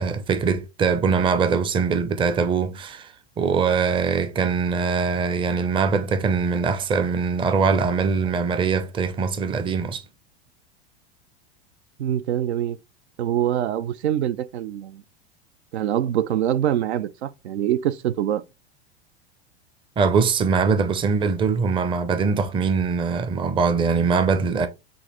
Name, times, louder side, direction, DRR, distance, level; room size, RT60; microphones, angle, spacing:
voice 1, 0.0-10.0 20.0-24.7, right 5 dB, 15° right, 0.5 m, -22 dB
voice 2, 12.0-12.8 13.2-15.0 15.7-18.4, right 11 dB, 85° right, 0.5 m, -24 dB
6.1 x 2.5 x 2.9 m
hypercardioid pair, 100°, 32 cm